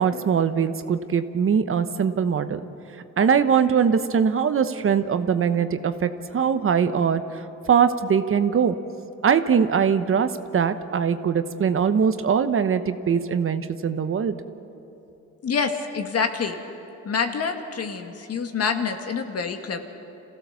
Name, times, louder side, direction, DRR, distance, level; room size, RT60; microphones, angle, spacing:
voice 1, 0.0-2.6 3.2-8.8 9.2-14.3, right 7 dB, 45° right, 10 dB, 1.0 m, -22 dB
voice 2, 15.4-16.5 17.0-19.8, left 5 dB, 55° left, 6 dB, 1.9 m, -26 dB
27.0 x 16.0 x 7.0 m, 2.9 s
cardioid pair, 90°, 30 cm